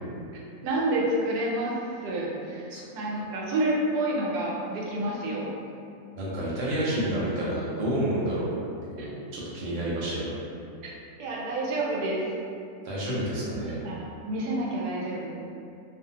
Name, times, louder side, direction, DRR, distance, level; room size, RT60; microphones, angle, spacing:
voice 1, 0.6-5.5 9.0-9.4 10.8-10.9 11.2-12.2 13.2-15.4, right 1 dB, 85° right, -3 dB, 1.1 m, -29 dB
voice 2, 6.1-8.5 8.9-10.4 12.8-13.8, right 1 dB, 60° right, -7 dB, 1.0 m, -29 dB
2.6 x 2.4 x 2.7 m, 2.6 s
omnidirectional pair, 1.7 m